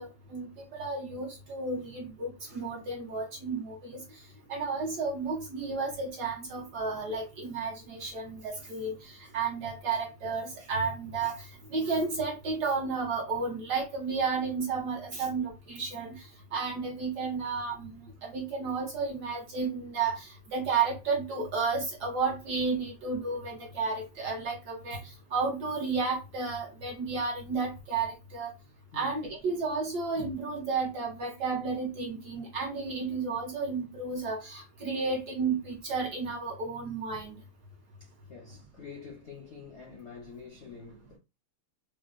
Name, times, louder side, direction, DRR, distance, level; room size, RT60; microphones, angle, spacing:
voice 1, 0.0-4.2 4.5-28.5 28.9-37.4, right 4 dB, 65° right, 1.1 m, -32 dB
voice 2, 28.9-29.2 38.0-41.2, left 6 dB, 70° left, 0.6 m, -47 dB
5.0 x 2.0 x 2.5 m
omnidirectional pair, 2.4 m